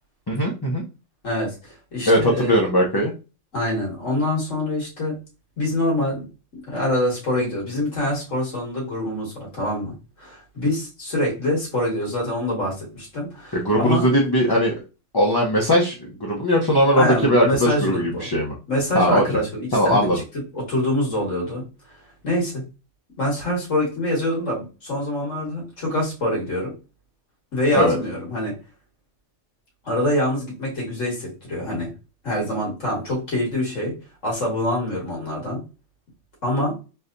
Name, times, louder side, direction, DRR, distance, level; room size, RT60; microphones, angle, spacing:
voice 1, 0.3-0.8 2.1-3.1 13.5-14.7 15.1-18.5 18.9-19.2 19.7-20.2 27.7-28.0, equal, 25° left, -3 dB, 0.5 m, -19 dB
voice 2, 1.2-2.7 3.5-5.2 5.6-6.3 6.5-14.1 17.0-18.2 18.7-20.1 20.5-21.6 22.2-22.6 23.2-26.7 27.5-28.5 29.8-31.9 32.2-33.9 34.2-35.6 36.4-36.7, left 1 dB, 85° left, -3 dB, 2.1 m, -25 dB
3.9 x 2.8 x 2.6 m, 0.31 s
omnidirectional pair, 1.3 m